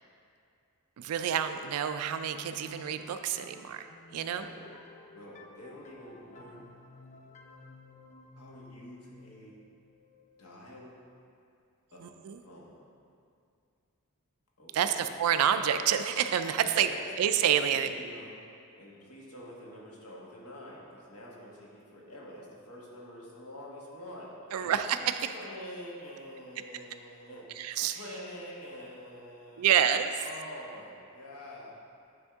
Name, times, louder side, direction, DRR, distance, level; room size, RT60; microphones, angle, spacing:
voice 1, 1.0-3.9 4.1-4.5 12.0-12.4 14.7-16.9 17.2-17.9 24.5-25.3 27.6-28.0 29.6-30.1, right 9 dB, 75° right, 9 dB, 0.3 m, -28 dB
sound 1, 1.3-10.9, left 2 dB, 30° left, 0.4 m, -54 dB
voice 2, 4.3-4.7 5.1-6.7 8.4-9.6 10.4-11.0 11.9-12.9 14.6-15.1 16.6-17.0 17.7-18.3 18.8-24.9 25.3-27.5 27.9-29.8 30.2-31.7, equal, 80° left, -4 dB, 1.4 m, -47 dB
9.6 x 3.6 x 3.5 m, 2.4 s
head